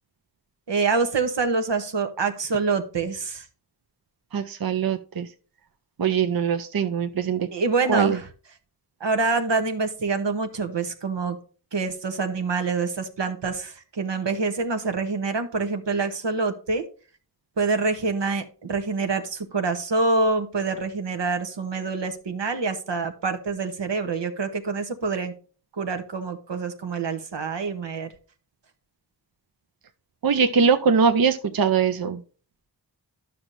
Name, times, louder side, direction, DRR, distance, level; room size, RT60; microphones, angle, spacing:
voice 1, 0.7-3.4 7.5-8.3 9.0-11.4 11.7-16.8 17.6-25.3 25.8-28.1, right 4 dB, 85° right, 1.1 m, -26 dB
voice 2, 4.3-5.3 6.0-7.5 7.9-8.2 30.2-32.2, right 6 dB, 55° right, 0.6 m, -22 dB
11.5 x 6.0 x 2.6 m
wide cardioid pair, 80°, 42 cm